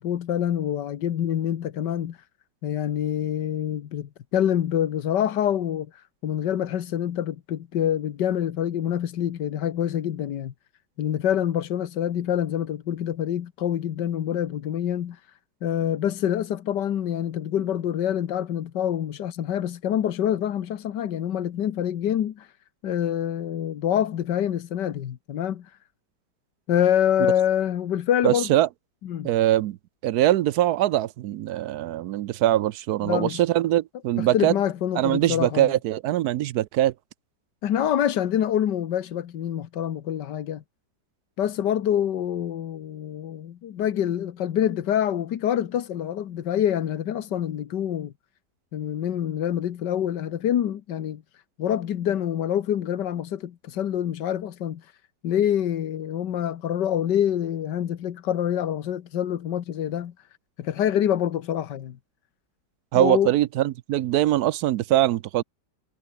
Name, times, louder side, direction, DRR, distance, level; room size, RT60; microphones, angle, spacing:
voice 1, 0.0-2.2 2.6-10.5 11.0-15.2 15.6-22.5 22.8-25.7 26.7-28.5 29.0-29.3 33.0-33.4 34.2-35.7 37.6-40.6 41.4-48.1 48.7-51.2 51.6-54.8 55.2-60.1 60.6-62.0 62.9-63.3, left 10 dB, 90° left, 1.7 m, -26 dB
voice 2, 28.2-28.7 29.2-29.8 30.0-34.5 35.0-36.9 62.9-65.4, right 13 dB, 70° right, 1.1 m, -22 dB
omnidirectional pair, 1.8 m